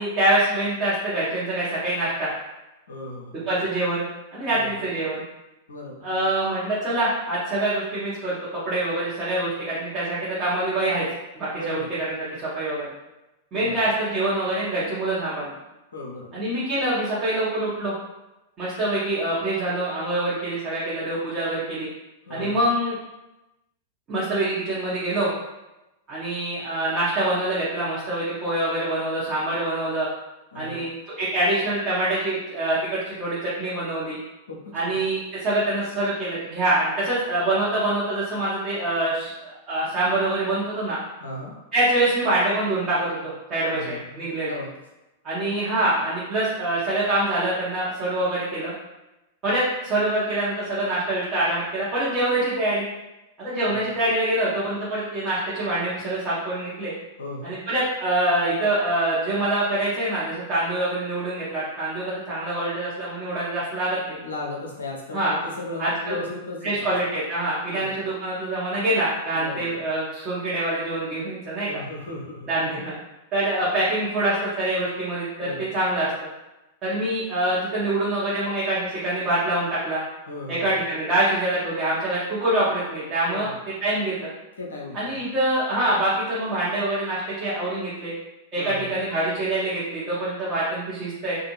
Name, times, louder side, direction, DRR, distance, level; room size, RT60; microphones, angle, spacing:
voice 1, 0.0-2.3 3.3-4.0 4.3-5.2 6.0-11.0 11.3-12.9 13.5-15.5 16.3-17.9 18.6-21.9 22.3-23.0 24.1-25.3 26.1-30.1 30.5-30.9 31.2-34.2 34.7-41.0 41.7-44.6 45.2-48.7 49.4-52.8 53.4-56.9 57.4-64.2 65.1-65.3 65.8-66.2 66.6-71.7 72.5-73.0 73.3-76.1 76.8-80.0 80.5-83.5 83.8-84.3 84.9-88.1 88.5-91.4, right 1 dB, 30° right, -10 dB, 0.9 m, -25 dB
voice 2, 2.9-3.4 4.5-4.8 5.7-6.1 11.6-12.0 13.5-13.8 15.9-16.5 22.2-22.6 30.5-30.9 34.5-34.9 41.2-41.6 43.7-44.7 53.7-53.9 57.2-57.6 64.2-66.9 67.7-68.0 69.3-69.8 71.6-72.5 75.4-75.8 80.3-80.7 83.3-83.6 84.6-85.2 88.6-88.9, left 2 dB, 70° left, -1 dB, 0.5 m, -36 dB
2.5 x 2.4 x 2.9 m, 0.98 s
figure-of-eight pair, 95°, 0 cm